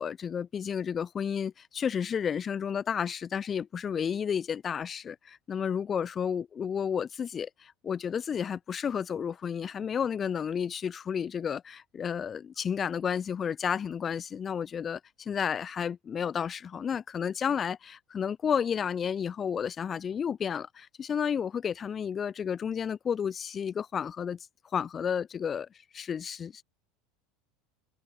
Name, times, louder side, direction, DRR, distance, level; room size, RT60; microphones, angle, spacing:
voice 1, 0.0-24.4 24.7-25.7 25.9-26.6, left 7 dB, 30° left, 0.7 m, -32 dB
hypercardioid pair, 95°, 0 cm